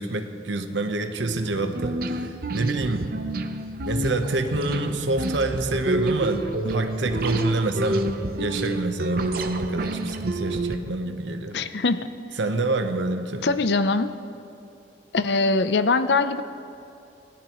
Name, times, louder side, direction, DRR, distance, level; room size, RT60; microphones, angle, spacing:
voice 1, 0.0-3.1 3.8-11.6 12.4-13.5, right 2 dB, 90° right, 7 dB, 1.0 m, -27 dB
sound 1, 1.1-10.8, right 2 dB, 55° right, 0.8 m, -28 dB
voice 2, 11.5-12.1 13.4-14.1 15.1-16.4, left 3 dB, 65° left, 11 dB, 0.6 m, -22 dB
25.0 x 17.5 x 3.1 m, 2.6 s
head